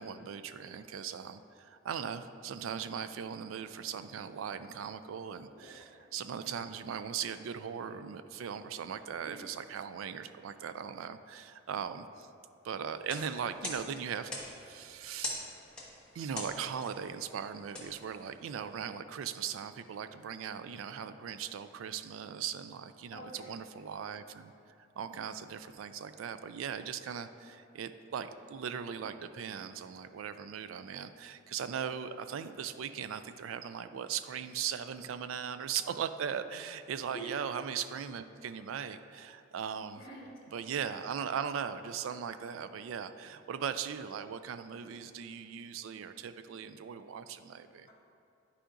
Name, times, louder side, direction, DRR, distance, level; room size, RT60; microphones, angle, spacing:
voice 1, 0.0-12.3 12.6-15.4 16.1-24.5 25.0-40.0 40.5-47.9, right 7 dB, 80° right, 11 dB, 0.3 m, -39 dB
voice 2, 5.5-6.0 9.2-9.4 23.1-23.5 37.1-37.4 39.9-40.3 47.9-48.0, right 2 dB, 20° left, -9 dB, 1.4 m, -47 dB
sound 1, 12.9-18.7, left 1 dB, 5° left, 1.1 m, -44 dB
11.5 x 4.9 x 2.5 m, 2.7 s
head